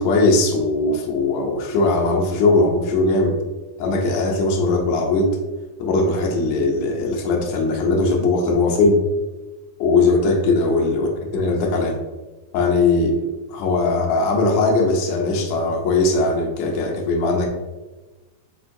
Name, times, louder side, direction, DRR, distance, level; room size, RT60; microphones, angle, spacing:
voice 1, 0.0-3.4 3.8-5.4 5.8-9.0 9.8-12.0 12.5-13.2 13.5-17.5, left 3 dB, 80° left, 0 dB, 1.6 m, -19 dB
5.3 x 3.7 x 2.6 m, 1.2 s
omnidirectional pair, 3.9 m